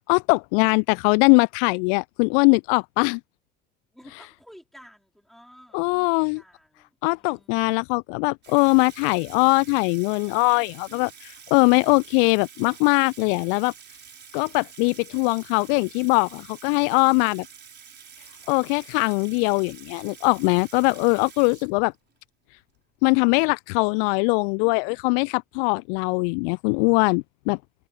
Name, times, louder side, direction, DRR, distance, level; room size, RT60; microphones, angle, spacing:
voice 1, 0.1-3.2 5.7-6.4 7.0-13.7 14.3-17.5 18.5-21.9 23.0-27.6, left 40 dB or more, 55° left, 0.5 m, -21 dB
voice 2, 3.9-7.8, equal, ahead, 4.7 m, -52 dB
Water tap faucet / Sink (filling or washing), 8.4-22.2, right 7 dB, 30° right, 5.2 m, -47 dB
figure-of-eight pair, 65°, 33 cm